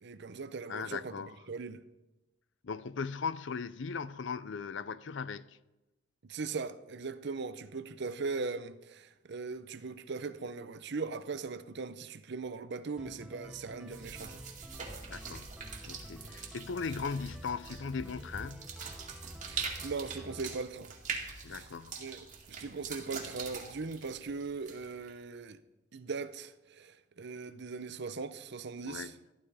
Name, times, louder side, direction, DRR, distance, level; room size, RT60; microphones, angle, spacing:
voice 1, 0.0-1.1 1.5-1.8 6.2-14.4 19.4-20.9 21.5-21.7 22.0-25.6 25.9-29.1, right 4 dB, 60° right, 0.7 m, -39 dB
voice 2, 0.7-1.3 2.6-5.6 15.1-15.5 15.9-18.7 21.4-22.0 28.8-29.1, left 5 dB, 70° left, 0.5 m, -38 dB
sound 1, 13.0-20.6, right 1 dB, 5° right, 0.4 m, -51 dB
sound 2, 13.9-25.1, right 5 dB, 40° right, 2.3 m, -43 dB
14.0 x 12.0 x 4.9 m
head